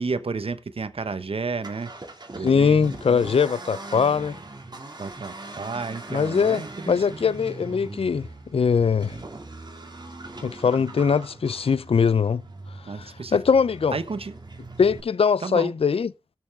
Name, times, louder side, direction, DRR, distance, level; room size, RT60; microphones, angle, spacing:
voice 1, 0.0-1.9 2.3-2.8 5.0-7.2 12.9-13.4 13.9-14.4 15.4-15.7, right 4 dB, 65° right, 1.1 m, -31 dB
Accelerating revving vroom, 1.5-15.0, right 2 dB, 45° right, 2.5 m, -40 dB
voice 2, 2.4-4.4 6.1-9.2 10.4-12.4 13.3-14.0 14.8-16.1, left 6 dB, 70° left, 0.5 m, -21 dB
18.0 x 6.9 x 3.5 m
cardioid pair, 45°, 10 cm